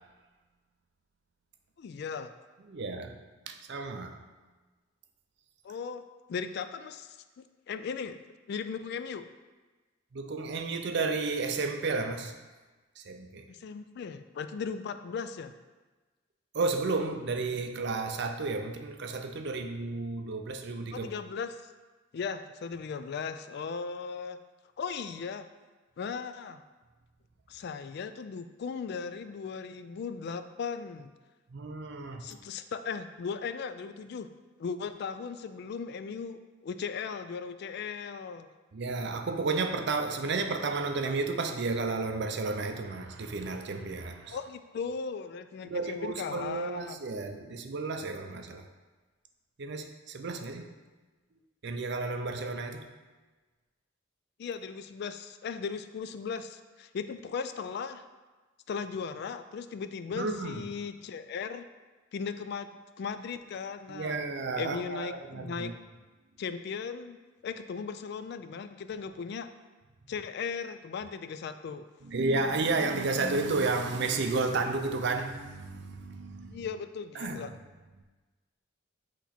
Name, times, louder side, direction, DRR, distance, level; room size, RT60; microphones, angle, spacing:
voice 1, 1.8-2.3 5.6-6.0 6.3-8.2 8.5-9.3 13.5-15.5 20.9-21.6 22.1-24.4 24.8-25.5 26.0-26.6 27.5-31.1 32.2-34.3 34.6-38.5 44.3-47.0 54.4-58.0 58.7-61.6 62.1-62.7 63.0-64.2 64.6-65.7 66.4-67.2 67.4-69.5 70.1-71.9 76.5-77.5, left 5 dB, 55° left, 10 dB, 0.3 m, -37 dB
voice 2, 2.7-3.2 3.5-4.2 10.1-12.3 13.0-13.5 16.5-21.1 31.5-32.3 38.7-44.4 45.6-48.6 49.6-50.7 51.6-52.9 60.1-60.6 63.9-65.7 72.0-76.7 77.2-77.5, right 3 dB, 60° right, 6 dB, 0.5 m, -32 dB
8.0 x 3.0 x 4.2 m, 1.3 s
head